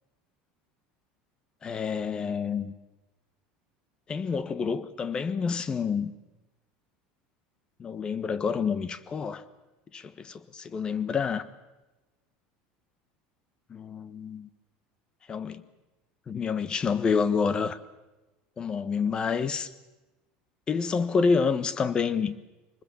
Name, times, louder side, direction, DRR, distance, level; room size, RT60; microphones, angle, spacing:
voice 1, 1.6-2.7 4.1-6.1 7.8-9.4 9.9-11.4 13.7-14.5 15.3-15.6 16.3-17.8 18.6-19.7 20.7-22.3, left 5 dB, 25° left, 1.3 m, -28 dB
24.0 x 20.5 x 7.0 m
supercardioid pair, 130°, 3 cm